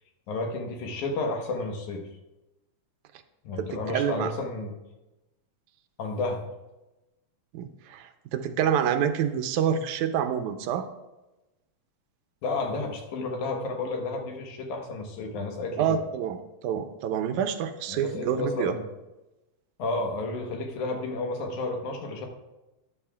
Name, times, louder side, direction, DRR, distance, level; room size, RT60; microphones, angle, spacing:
voice 1, 0.3-2.0 3.4-4.7 6.0-6.4 12.4-16.0 17.9-18.8 19.8-22.3, left 3 dB, 85° left, 2 dB, 2.7 m, -31 dB
voice 2, 3.6-4.3 7.5-10.9 15.8-18.7, right 8 dB, 90° right, 8 dB, 2.1 m, -27 dB
13.0 x 11.0 x 2.4 m, 1.0 s
omnidirectional pair, 3.4 m